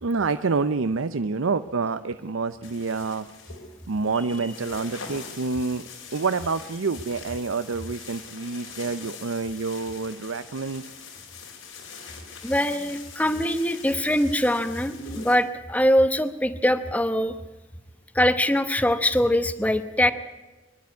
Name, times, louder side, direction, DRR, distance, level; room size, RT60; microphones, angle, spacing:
voice 1, 0.0-3.3 3.9-10.8, right 4 dB, 85° right, 12 dB, 0.6 m, -27 dB
sound 1, 2.6-15.4, left 5 dB, 90° left, 4.7 m, -43 dB
voice 2, 12.4-17.4 18.1-20.1, left 1 dB, 5° left, 10 dB, 0.9 m, -22 dB
25.0 x 12.0 x 9.6 m, 1.2 s
head